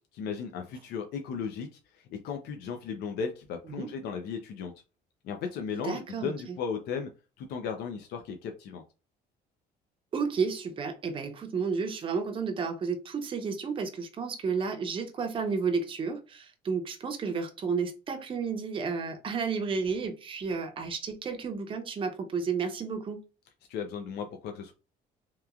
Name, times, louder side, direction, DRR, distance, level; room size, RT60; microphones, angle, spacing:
voice 1, 0.1-1.7 2.1-4.7 5.2-7.1 7.4-8.8 23.7-24.7, left 6 dB, 75° left, 0.5 m, -35 dB
voice 2, 5.8-6.6 10.1-23.2, right 5 dB, 30° right, 0.6 m, -32 dB
2.9 x 2.3 x 2.4 m
cardioid pair, 110°, 17 cm